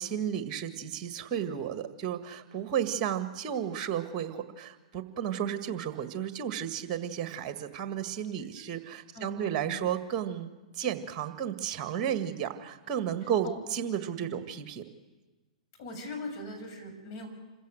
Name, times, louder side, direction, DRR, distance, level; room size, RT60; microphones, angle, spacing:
voice 1, 0.0-10.5 10.8-14.8, right 9 dB, 35° right, 8 dB, 1.9 m, -33 dB
voice 2, 9.1-9.9 13.4-13.6 14.2-14.4 15.8-17.3, left 1 dB, 45° left, 3 dB, 6.0 m, -41 dB
27.0 x 16.0 x 6.5 m, 1.2 s
hypercardioid pair, 115°, 4 cm